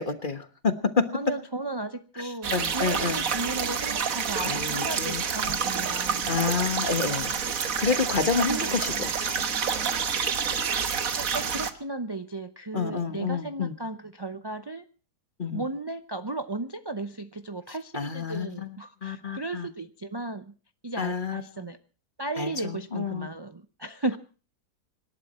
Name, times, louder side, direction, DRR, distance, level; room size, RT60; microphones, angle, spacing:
voice 1, 0.0-1.1 2.2-3.3 4.4-5.2 6.3-7.3 7.8-9.1 12.7-13.7 15.4-15.6 17.9-19.7 21.0-21.4 22.4-23.3, left 5 dB, 35° left, 10 dB, 1.4 m, -29 dB
voice 2, 1.1-6.3 8.4-9.0 11.2-14.9 15.5-20.5 20.8-21.8 22.2-24.2, right 2 dB, 30° right, 9 dB, 0.5 m, -35 dB
sound 1, 2.4-11.7, right 6 dB, 60° right, 1.6 m, -28 dB
26.0 x 12.0 x 4.3 m, 0.38 s
omnidirectional pair, 1.7 m